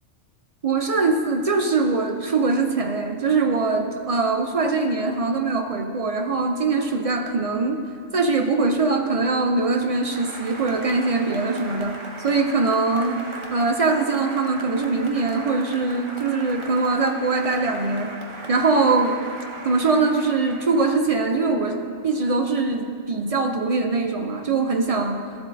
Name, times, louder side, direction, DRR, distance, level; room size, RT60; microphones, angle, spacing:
voice 1, 0.6-7.8 8.1-13.2 13.5-18.2 18.5-19.2 19.6-25.2, right 3 dB, 60° right, 5 dB, 0.4 m, -22 dB
Applause, 9.7-21.2, right 2 dB, 25° right, 0.9 m, -38 dB
13.5 x 7.8 x 2.7 m, 2.5 s
omnidirectional pair, 1.3 m